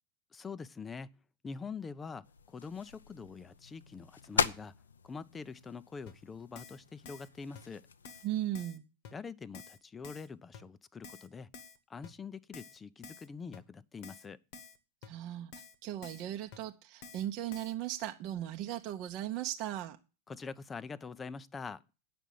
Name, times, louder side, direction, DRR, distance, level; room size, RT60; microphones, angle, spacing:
voice 1, 0.3-1.2 1.4-4.7 5.0-7.9 9.1-11.5 11.9-14.4 20.3-21.8, left 5 dB, 15° left, 0.6 m, -44 dB
sound 1, 2.2-8.5, left 6 dB, 70° left, 0.6 m, -39 dB
Keyboard (musical), 6.1-6.2 6.6-6.8 7.1-7.3 7.6-7.7 8.1-8.3 8.6-8.8 9.1-9.2 9.5-9.8 10.0-10.3 10.5-10.6 11.0-11.3 11.5-11.8 12.0-12.1 12.5-12.8 13.0-13.3 13.5-13.6 14.0-14.3 14.5-14.8 15.0-15.1 15.5-15.8 16.0-16.3 16.5-16.6 17.0-17.3 17.5-17.7, left 5 dB, 45° left, 1.2 m, -50 dB
voice 2, 8.2-8.8 15.1-20.0, right 12 dB, 40° right, 0.8 m, -37 dB
9.0 x 6.1 x 8.3 m
figure-of-eight pair, 90°, 0 cm